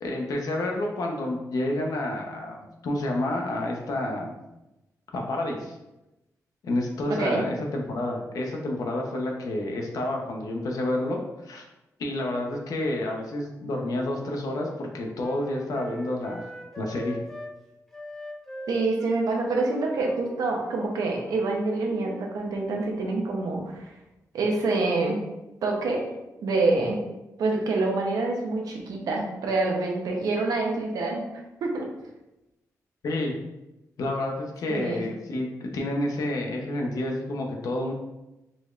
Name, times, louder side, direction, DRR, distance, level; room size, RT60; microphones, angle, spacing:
voice 1, 0.0-4.3 5.1-5.8 6.6-11.6 12.0-16.5 16.8-17.2 33.0-33.3 34.0-37.9, left 1 dB, 75° left, 1 dB, 0.7 m, -29 dB
Wind instrument woodwind instrument, 13.6-17.5 17.9-22.3, equal, 5° left, 0.5 m, -42 dB
voice 2, 18.7-23.9 24.3-25.2 25.6-26.0 26.4-27.0 27.4-31.3 31.6-31.9 34.7-35.0, right 3 dB, 85° right, 0 dB, 0.7 m, -26 dB
4.0 x 3.1 x 2.4 m, 0.97 s
wide cardioid pair, 120°, 6 cm